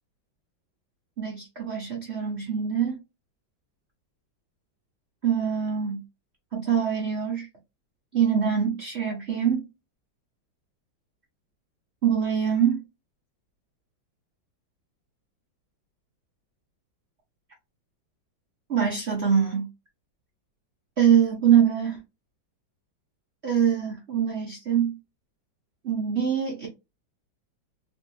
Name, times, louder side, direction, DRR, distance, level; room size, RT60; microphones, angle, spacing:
voice 1, 1.2-3.0 5.2-6.0 6.5-7.5 8.1-9.7 12.0-12.8 18.7-19.7 21.0-22.0 23.4-25.0 25.8-26.7, right 8 dB, 80° right, 0.6 m, -24 dB
3.1 x 2.6 x 3.0 m
omnidirectional pair, 2.1 m